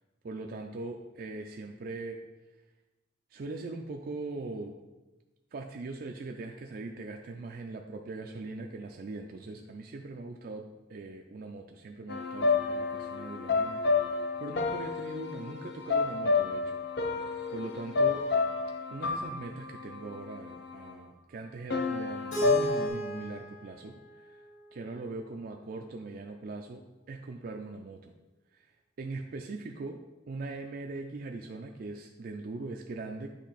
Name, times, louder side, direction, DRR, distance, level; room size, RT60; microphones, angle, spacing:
voice 1, 0.2-2.2 3.3-4.8 5.5-10.6 10.9-13.8 14.4-17.1 17.5-18.3 18.9-24.4 24.7-28.1 28.5-28.7 29.0-30.0 30.3-33.3, right 3 dB, 55° right, 2 dB, 0.4 m, -41 dB
sound 1, 12.1-20.9 21.7-22.9, left 4 dB, 65° left, 0.6 m, -30 dB
Keyboard (musical), 22.3-25.2, right 1 dB, 90° left, 2.1 m, -35 dB
8.2 x 3.3 x 4.1 m, 1.1 s
head